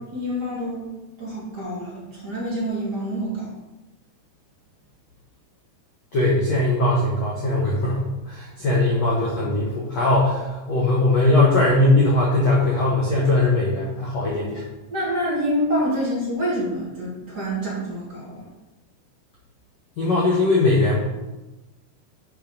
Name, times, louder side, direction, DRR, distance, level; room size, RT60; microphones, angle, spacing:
voice 1, 0.1-0.9 1.2-3.5 14.9-18.4, equal, 25° right, -8 dB, 2.6 m, -27 dB
voice 2, 6.1-14.6 20.0-21.0, left 2 dB, 75° left, -5 dB, 1.5 m, -20 dB
9.2 x 5.5 x 5.3 m, 1.1 s
omnidirectional pair, 5.4 m